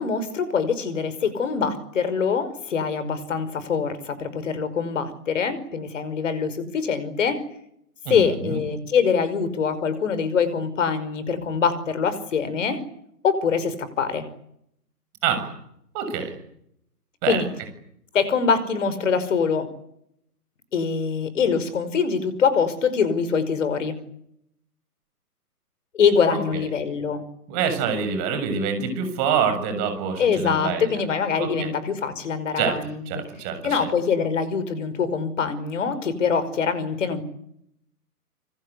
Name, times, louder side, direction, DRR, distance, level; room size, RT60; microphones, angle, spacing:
voice 1, 0.0-7.4 8.1-12.8 13.2-14.3 17.3-17.5 18.1-19.7 20.7-24.0 25.9-27.2 30.2-33.2 33.6-37.2, left 6 dB, 50° left, 14 dB, 5.5 m, -24 dB
voice 2, 8.1-8.6 15.2-15.5 15.9-16.3 17.2-17.5 26.3-26.4 27.5-31.0 31.4-31.7 32.6-32.8 33.1-33.9, right 6 dB, 25° right, 9 dB, 7.1 m, -26 dB
26.5 x 26.0 x 8.3 m, 0.76 s
figure-of-eight pair, 135°, 47 cm